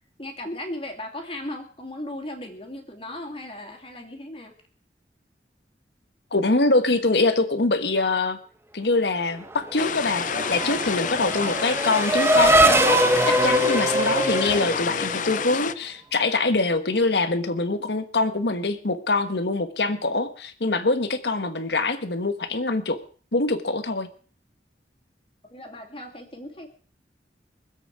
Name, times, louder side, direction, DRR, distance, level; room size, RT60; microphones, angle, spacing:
voice 1, 0.2-4.6 10.6-10.8 25.5-26.7, left 1 dB, 30° left, 4 dB, 2.7 m, -36 dB
voice 2, 6.3-8.4 8.7-23.0 23.3-24.1, left 3 dB, 70° left, 10 dB, 1.4 m, -24 dB
Race car auto racing / Accelerating revving vroom, 9.5-15.6, right 1 dB, 15° right, 0.9 m, -22 dB
sound 1, 9.8-15.7, left 7 dB, 50° left, 0.6 m, -29 dB
24.0 x 8.1 x 4.8 m, 0.43 s
head